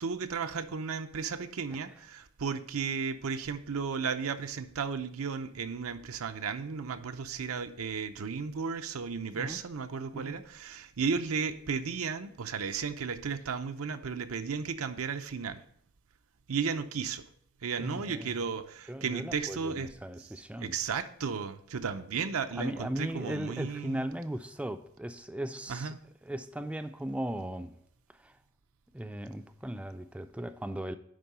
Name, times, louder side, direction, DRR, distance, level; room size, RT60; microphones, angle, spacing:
voice 1, 0.0-15.6 16.5-17.2 17.6-19.9 20.6-24.1 25.7-26.0, right 5 dB, 85° right, 0.6 m, -34 dB
voice 2, 17.8-18.5 18.9-20.8 22.5-25.9 26.2-27.8 28.1-28.4 28.9-31.0, right 1 dB, 5° right, 0.4 m, -37 dB
10.5 x 3.7 x 5.3 m
head